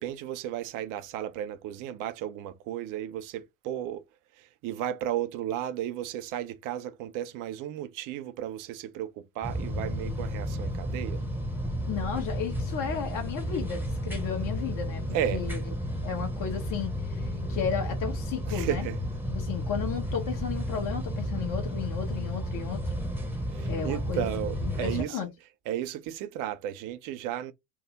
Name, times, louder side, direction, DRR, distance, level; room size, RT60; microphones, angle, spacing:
voice 1, 0.0-4.0 4.3-11.2 15.1-15.4 18.5-19.0 23.5-25.3 25.7-27.5, right 11 dB, 50° right, 0.5 m, -34 dB
sound 1, 9.4-25.0, equal, 5° right, 0.9 m, -32 dB
voice 2, 11.9-15.6 16.0-18.9 19.3-22.8 23.6-24.5 24.8-25.3, left 8 dB, 50° left, 1.3 m, -34 dB
3.4 x 2.0 x 2.8 m
figure-of-eight pair, 55°, 41 cm